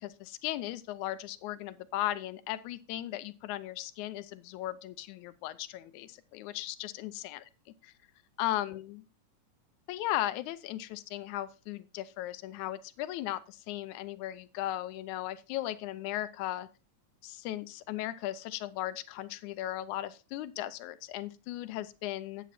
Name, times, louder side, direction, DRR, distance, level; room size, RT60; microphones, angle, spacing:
voice 1, 0.0-7.4 7.8-7.9 8.4-9.0 9.9-16.7 17.2-22.5, left 14 dB, 85° left, 13 dB, 2.1 m, -37 dB
8.5 x 8.1 x 4.1 m, 0.32 s
omnidirectional pair, 3.3 m